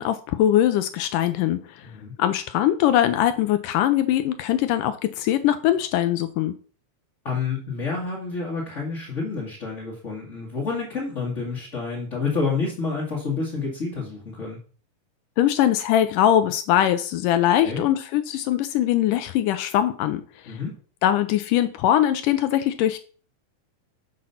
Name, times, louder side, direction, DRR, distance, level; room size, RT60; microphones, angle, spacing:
voice 1, 0.0-1.6 2.2-6.5 15.4-20.6 21.0-23.0, left 11 dB, 80° left, 10 dB, 2.0 m, -21 dB
voice 2, 1.8-2.1 7.2-14.6 17.6-17.8 20.5-20.7, left 4 dB, 30° left, -5 dB, 1.6 m, -29 dB
7.6 x 6.0 x 5.7 m, 0.41 s
omnidirectional pair, 4.1 m